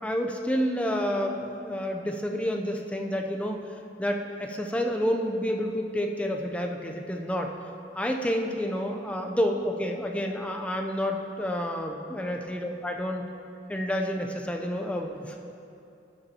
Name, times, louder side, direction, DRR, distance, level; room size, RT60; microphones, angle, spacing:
voice 1, 0.0-3.6 4.0-7.5 8.0-13.2 13.7-15.4, equal, 5° left, 2 dB, 0.5 m, -29 dB
12.5 x 6.9 x 2.8 m, 2.6 s
head